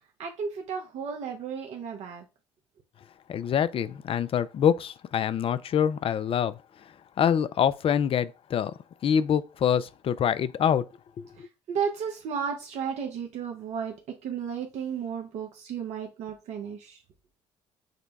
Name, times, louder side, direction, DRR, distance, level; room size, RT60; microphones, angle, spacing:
voice 1, 0.2-2.2 11.4-17.0, right 7 dB, 65° right, 0.8 m, -34 dB
voice 2, 3.3-6.6 7.2-8.7 9.0-10.8 11.2-11.3, left 8 dB, 45° left, 0.4 m, -25 dB
5.2 x 2.2 x 4.0 m
hypercardioid pair, 55°, 13 cm